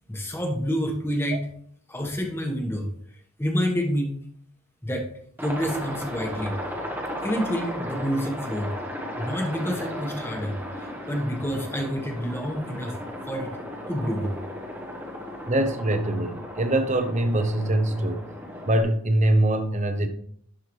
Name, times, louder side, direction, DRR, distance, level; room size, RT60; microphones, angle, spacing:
voice 1, 0.1-1.5 1.9-2.9 3.4-4.2 4.8-5.1 5.4-6.6 7.2-8.7 9.2-12.9 13.3-13.5 13.9-14.3, equal, 10° left, 1.2 m, -28 dB
Aircraft, 5.4-18.8, equal, 10° right, 1.0 m, -35 dB
voice 2, 15.5-18.2 18.7-20.1, right 1 dB, 35° right, 0.8 m, -23 dB
11.5 x 4.6 x 3.1 m
head